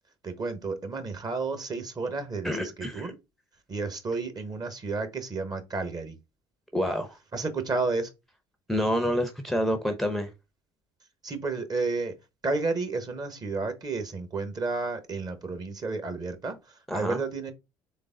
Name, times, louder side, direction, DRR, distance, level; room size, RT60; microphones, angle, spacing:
voice 1, 0.2-3.1 3.7-6.2 7.3-8.1 11.2-12.1 12.4-17.5, right 3 dB, 30° right, 1.2 m, -31 dB
voice 2, 2.4-3.1 6.7-7.2 8.7-10.3 16.9-17.2, equal, ahead, 0.8 m, -28 dB
3.9 x 3.5 x 3.7 m
hypercardioid pair, 60°, 13 cm